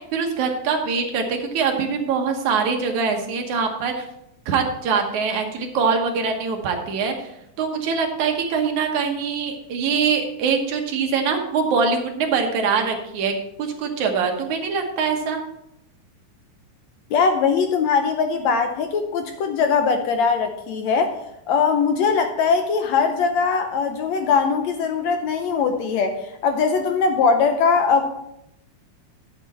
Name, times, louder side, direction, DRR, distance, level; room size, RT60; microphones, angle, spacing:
voice 1, 0.0-4.0 4.5-7.3 7.6-13.3 13.6-15.4, right 5 dB, 70° right, 4 dB, 2.5 m, -23 dB
voice 2, 17.1-21.2 21.5-26.2 26.4-28.1, left 5 dB, 75° left, 6 dB, 1.8 m, -20 dB
11.5 x 7.3 x 4.2 m, 0.80 s
omnidirectional pair, 3.6 m